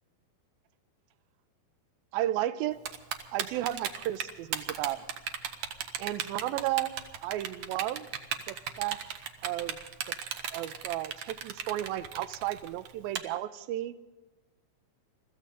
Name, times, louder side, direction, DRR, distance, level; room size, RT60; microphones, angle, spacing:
voice 1, 2.1-2.8 3.3-5.1 6.0-6.9 7.2-8.1 8.5-9.0 9.4-9.8 10.5-13.9, right 14 dB, 85° right, 13 dB, 2.5 m, -33 dB
Typing, 2.9-13.2, right 8 dB, 65° right, 2.1 m, -35 dB
23.0 x 14.5 x 3.8 m, 1.1 s
omnidirectional pair, 4.3 m